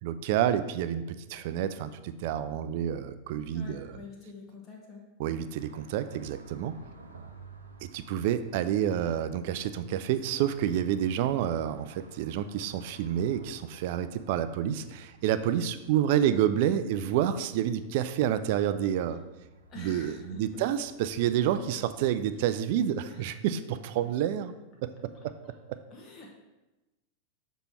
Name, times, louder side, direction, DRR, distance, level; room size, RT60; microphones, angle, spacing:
voice 1, 0.0-3.9 5.2-6.8 7.8-19.2 19.8-24.5 24.8-25.3 25.7-25.8, right 10 dB, 50° right, 11 dB, 0.4 m, -29 dB
voice 2, 3.5-5.0 19.7-20.6 22.3-22.5 23.0-23.4 25.4-25.5 25.9-26.3, left 4 dB, 30° left, -1 dB, 1.1 m, -47 dB
sound 1, 5.5-21.3, right 3 dB, 80° right, 0.7 m, -54 dB
6.7 x 3.0 x 5.5 m, 1.1 s
figure-of-eight pair, 90°, 0 cm